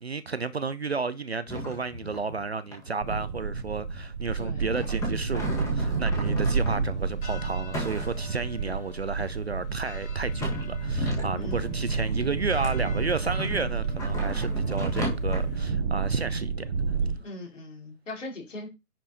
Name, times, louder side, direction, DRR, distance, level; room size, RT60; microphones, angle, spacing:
voice 1, 0.0-16.5, right 4 dB, 45° right, 0.6 m, -32 dB
sound 1, 1.5-2.4 2.7-2.9 3.1-4.2 4.7-7.2 7.7-8.5 9.2-9.3 10.1-12.1 12.6-15.4, equal, 5° left, 1.5 m, -35 dB
sound 2, 3.0-17.1, right 4 dB, 20° right, 0.9 m, -30 dB
voice 2, 4.4-4.7 8.6-9.0 11.4-11.8 17.0-18.7, left 2 dB, 50° left, 4.1 m, -41 dB
sound 3, 5.8-15.7, equal, 35° left, 4.3 m, -43 dB
10.0 x 4.6 x 4.1 m
figure-of-eight pair, 135°, 47 cm